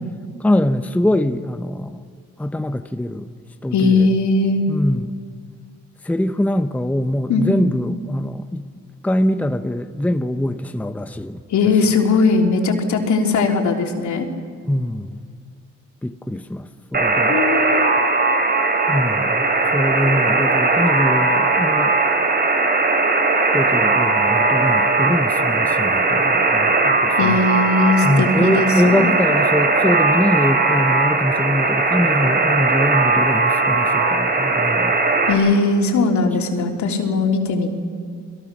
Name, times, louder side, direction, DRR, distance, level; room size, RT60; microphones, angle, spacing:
voice 1, 0.4-2.0 2.4-3.3 3.6-4.1 4.7-5.2 6.0-8.7 9.0-11.4 14.7-15.2 16.0-17.4 18.9-19.5 19.7-21.9 23.5-27.4 28.0-35.0, left 1 dB, 5° left, 0.8 m, -23 dB
voice 2, 3.7-4.7 7.3-7.7 11.5-14.3 17.3-17.9 27.2-29.1 35.3-37.8, left 3 dB, 70° left, 3.4 m, -19 dB
Alarm, 16.9-35.3, right 3 dB, 35° right, 3.6 m, -18 dB
29.5 x 21.5 x 6.2 m
cardioid pair, 90°, 30 cm